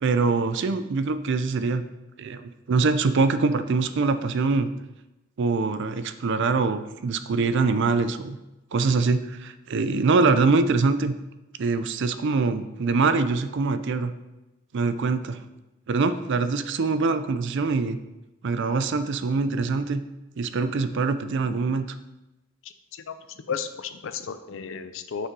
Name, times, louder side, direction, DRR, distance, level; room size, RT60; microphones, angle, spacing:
voice 1, 0.0-1.9 2.2-4.7 5.4-8.4 8.7-11.1 11.6-14.1 14.7-15.4 15.9-18.0 18.4-20.0 20.4-21.9, right 4 dB, 55° right, 11 dB, 0.4 m, -24 dB
voice 2, 23.5-25.3, left 6 dB, 60° left, 11 dB, 0.5 m, -33 dB
5.9 x 5.7 x 4.6 m, 1.0 s
head